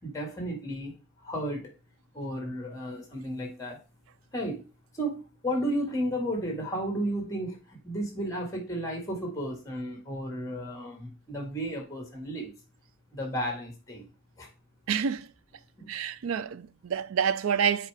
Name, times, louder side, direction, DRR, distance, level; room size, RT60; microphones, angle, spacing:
voice 1, 0.0-0.9 1.2-1.6 2.1-3.8 4.3-4.6 4.9-12.5 13.1-14.1 14.4-14.5 15.8-15.9, equal, 15° left, 1.9 m, -33 dB
voice 2, 14.9-15.3 15.9-17.9, right 7 dB, 90° right, 0.4 m, -28 dB
7.3 x 4.7 x 3.4 m
head